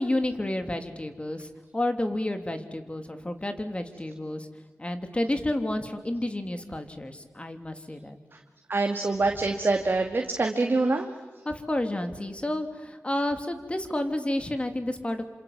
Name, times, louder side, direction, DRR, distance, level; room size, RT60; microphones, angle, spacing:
voice 1, 0.0-4.5 4.8-8.2 11.4-15.2, left 1 dB, 25° left, 6 dB, 3.2 m, -30 dB
voice 2, 8.7-11.1, right 3 dB, 45° right, 3 dB, 2.3 m, -25 dB
28.5 x 26.5 x 7.5 m, 1.3 s
cardioid pair, 60°, 5 cm